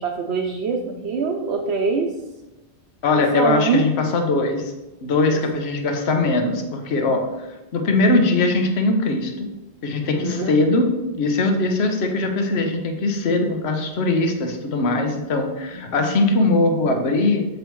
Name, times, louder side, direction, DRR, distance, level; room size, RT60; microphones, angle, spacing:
voice 1, 0.0-2.1 3.2-3.8 5.3-5.4 10.0-10.5 16.0-16.2, right 4 dB, 75° right, 1 dB, 0.9 m, -24 dB
voice 2, 3.0-4.7 5.0-7.5 7.7-9.3 9.8-10.9 11.2-17.4, left 2 dB, 75° left, 4 dB, 1.1 m, -21 dB
7.6 x 5.1 x 3.1 m, 1.0 s
omnidirectional pair, 1.1 m